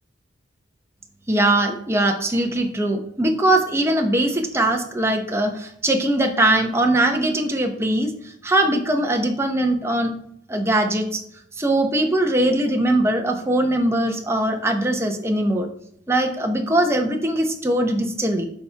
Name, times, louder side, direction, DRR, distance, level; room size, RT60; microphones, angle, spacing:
voice 1, 1.3-8.1 8.4-10.1 10.5-11.2 11.6-15.7 16.1-18.5, right 1 dB, 15° right, 3 dB, 0.9 m, -21 dB
11.5 x 4.3 x 3.4 m, 0.68 s
head